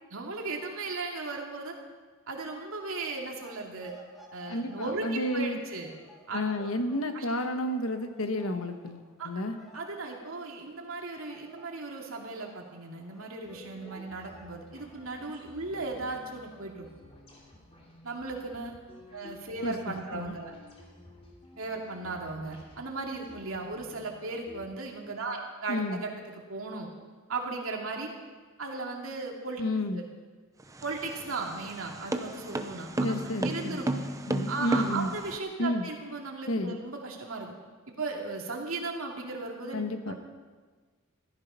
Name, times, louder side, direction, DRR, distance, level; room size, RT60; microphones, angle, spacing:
voice 1, 0.1-1.7 2.3-3.9 4.3-5.9 6.3-6.7 7.1-7.2 9.2-9.3 9.7-16.9 18.0-18.7 19.1-20.5 21.6-26.9 27.3-28.1 28.6-29.6 29.9-30.0 30.8-34.0 34.5-37.5 37.9-40.1, right 3 dB, 75° right, 0 dB, 2.7 m, -36 dB
sound 1, 3.0-10.9 11.2-16.7, equal, ahead, 2.8 m, -56 dB
voice 2, 4.5-5.6 6.3-9.6 19.6-20.4 25.7-26.0 29.6-30.0 33.0-33.8 34.3-35.1 35.6-35.9 36.5-36.8 39.7-40.1, left 1 dB, 85° left, 7 dB, 1.4 m, -31 dB
sound 2, 13.4-24.7, left 1 dB, 30° left, 3.1 m, -53 dB
sound 3, 30.6-35.4, right 1 dB, 15° right, 0.8 m, -33 dB
15.5 x 14.0 x 5.7 m, 1.4 s
head